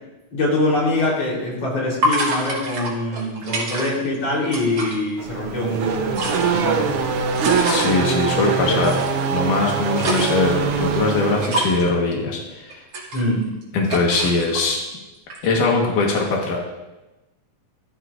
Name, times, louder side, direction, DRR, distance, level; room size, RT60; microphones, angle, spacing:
voice 1, 0.3-6.9 8.3-8.9 13.1-13.4, left 1 dB, 50° left, -3 dB, 4.7 m, -24 dB
sound 1, 1.0-1.1 2.0-4.2 4.4-5.0 5.9-7.9 8.8-9.3 9.7-10.6 11.4-11.9 12.7-13.6 13.9-14.6 15.3-15.6, right 2 dB, 50° right, 3.2 m, -26 dB
Race car auto racing / Accelerating revving vroom, 5.2-11.9, right 5 dB, 70° right, 1.4 m, -23 dB
voice 2, 7.6-9.0 9.3-12.8 13.7-14.8 15.4-16.6, left 3 dB, 90° left, -1 dB, 3.1 m, -21 dB
15.5 x 13.5 x 2.6 m, 1.0 s
omnidirectional pair, 3.6 m